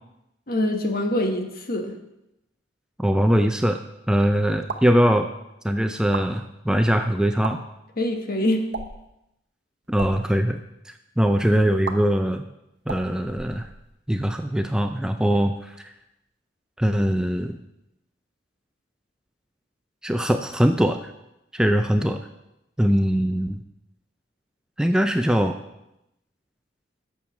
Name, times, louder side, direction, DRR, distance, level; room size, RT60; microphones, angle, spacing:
voice 1, 0.5-1.9 8.0-8.7, left 1 dB, 50° left, 4 dB, 1.2 m, -24 dB
voice 2, 3.0-3.8 4.1-5.3 5.6-7.6 9.9-10.6 10.9-12.4 12.9-13.7 14.1-15.5 16.8-17.6 20.0-21.1 21.5-22.2 22.8-23.6 24.8-25.6, equal, 5° right, 6 dB, 0.4 m, -21 dB
sound 1, 4.6-5.0 6.0-6.3 7.3-7.5 8.7-9.1 9.8-10.2 11.8-12.0 12.8-14.0, right 4 dB, 65° right, 0.9 m, -34 dB
8.7 x 7.1 x 5.9 m, 0.87 s
head